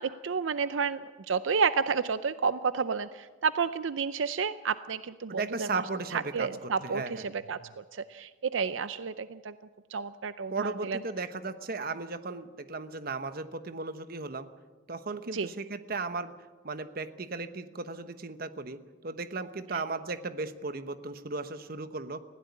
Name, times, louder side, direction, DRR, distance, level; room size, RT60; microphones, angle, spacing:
voice 1, 0.0-5.8 6.1-9.5 9.9-11.0 15.3-15.5 19.7-19.8, right 5 dB, 85° right, 13 dB, 0.6 m, -31 dB
voice 2, 5.3-7.2 10.5-14.5 14.9-16.3 16.6-22.2, right 3 dB, 50° right, 11 dB, 1.1 m, -36 dB
20.5 x 16.0 x 8.3 m, 1.3 s
head